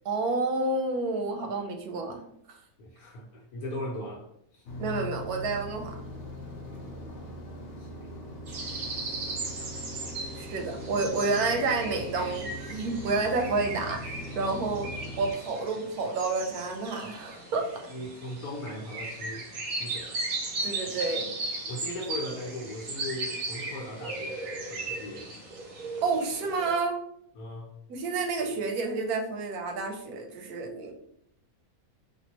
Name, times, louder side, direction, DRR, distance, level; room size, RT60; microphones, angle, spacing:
voice 1, 0.1-2.2 2.5-2.6 4.8-6.0 10.4-17.7 20.6-21.3 26.0-27.0 27.9-30.9, right 3 dB, 90° right, 4 dB, 1.2 m, -29 dB
voice 2, 2.8-4.6 6.6-8.2 8.6-8.7 10.6-10.7 17.9-20.2 21.7-25.3 27.3-27.7, left 1 dB, 85° left, -4 dB, 1.2 m, -39 dB
sound 1, 4.7-15.3, equal, 60° left, 0.9 m, -40 dB
sound 2, 8.5-26.7, right 2 dB, 70° right, 1.3 m, -37 dB
3.5 x 2.6 x 2.9 m, 0.71 s
omnidirectional pair, 1.6 m